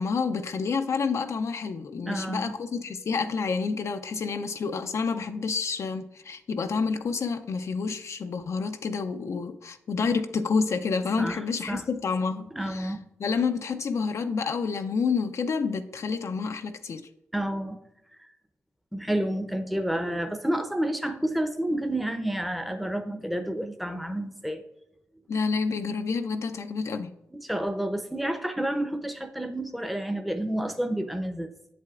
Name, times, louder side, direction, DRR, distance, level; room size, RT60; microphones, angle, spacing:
voice 1, 0.0-12.9 13.2-17.1 25.3-27.1, left 5 dB, 60° left, 0.4 m, -29 dB
voice 2, 2.1-2.5 11.2-11.8 12.6-13.0 17.3-17.8 18.2-18.3 18.9-24.6 27.4-31.5, right 1 dB, ahead, 0.7 m, -30 dB
7.5 x 7.5 x 2.4 m
supercardioid pair, 50°, 6 cm